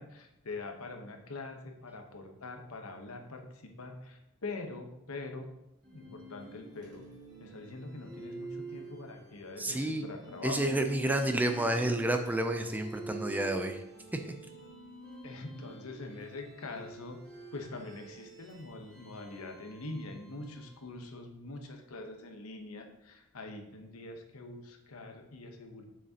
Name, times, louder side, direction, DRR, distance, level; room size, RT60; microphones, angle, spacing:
voice 1, 0.0-5.5 5.9-7.1 7.4-10.7 15.2-17.2 17.5-25.8, left 2 dB, 80° left, 4 dB, 0.9 m, -44 dB
sound 1, 5.8-20.9, right 2 dB, 35° right, 2.2 m, -48 dB
voice 2, 9.6-10.1 10.4-13.8 14.1-14.3, right 1 dB, 10° right, 6 dB, 0.4 m, -30 dB
6.6 x 6.2 x 2.8 m, 0.85 s
head